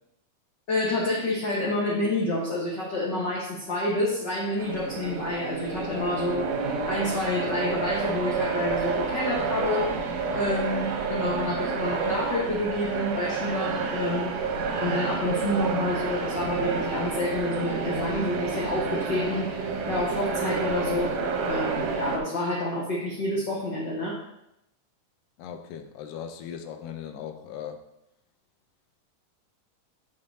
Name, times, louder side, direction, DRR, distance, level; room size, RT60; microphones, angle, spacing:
voice 1, 0.7-9.9 10.3-14.4 14.8-19.5 19.9-21.2 21.5-24.2, left 2 dB, 65° left, -5 dB, 1.1 m, -28 dB
sound 1, 4.6-22.2, right 5 dB, 70° right, 1.8 m, -29 dB
voice 2, 25.4-27.8, left 8 dB, 85° left, 7 dB, 2.3 m, -38 dB
10.5 x 5.3 x 2.7 m, 0.82 s
omnidirectional pair, 3.8 m